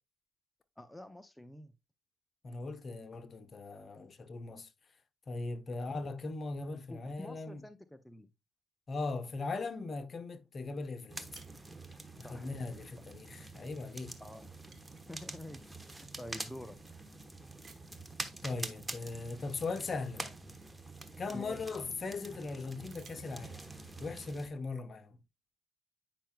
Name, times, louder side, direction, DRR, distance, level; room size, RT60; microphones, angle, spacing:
voice 1, 0.8-1.7 6.9-8.3 12.2-12.5 14.2-14.5 15.1-16.9 21.3-21.7, left 1 dB, 10° left, 0.5 m, -48 dB
voice 2, 2.4-4.7 5.3-7.6 8.9-11.4 12.3-14.1 18.4-20.3 21.2-23.6 24.0-25.1, left 3 dB, 40° left, 1.0 m, -39 dB
sound 1, 11.1-24.5, right 2 dB, 15° right, 1.0 m, -46 dB
sound 2, 11.3-12.3 13.7-13.9 14.2-15.9 16.5-16.6 17.6-18.2 19.7-19.8 20.1-21.7 22.8-23.9, right 6 dB, 55° right, 1.2 m, -61 dB
9.1 x 5.6 x 2.2 m
cardioid pair, 90°, 0 cm